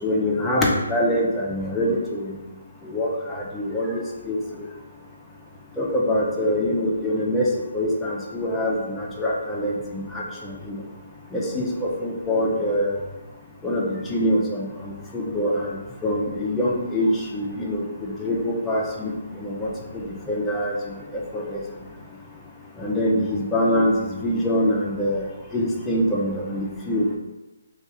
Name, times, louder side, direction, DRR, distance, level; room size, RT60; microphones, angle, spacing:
voice 1, 0.0-2.3 2.8-4.4 5.8-7.5 7.7-10.8 11.3-13.0 13.6-15.8 16.0-20.8 21.1-21.6 22.8-25.3 25.5-27.1, left 1 dB, 10° left, -4 dB, 0.5 m, -24 dB
2.3 x 2.3 x 4.0 m, 1.1 s
figure-of-eight pair, 150°, 0 cm